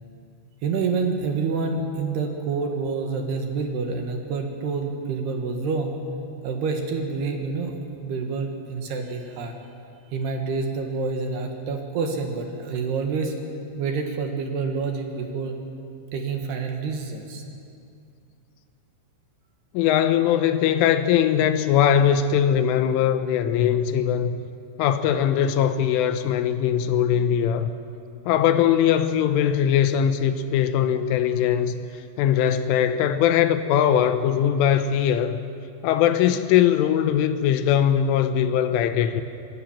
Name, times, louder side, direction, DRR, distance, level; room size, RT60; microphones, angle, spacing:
voice 1, 0.6-6.0 6.4-7.7 8.0-9.5 10.1-13.3 13.8-15.6 16.1-17.4, right 4 dB, 65° right, 3 dB, 3.3 m, -27 dB
voice 2, 19.7-24.4 24.8-27.7 28.3-31.7 32.2-35.4 35.8-39.2, left 9 dB, 80° left, 10 dB, 3.3 m, -21 dB
26.0 x 21.0 x 7.3 m, 2.5 s
omnidirectional pair, 5.8 m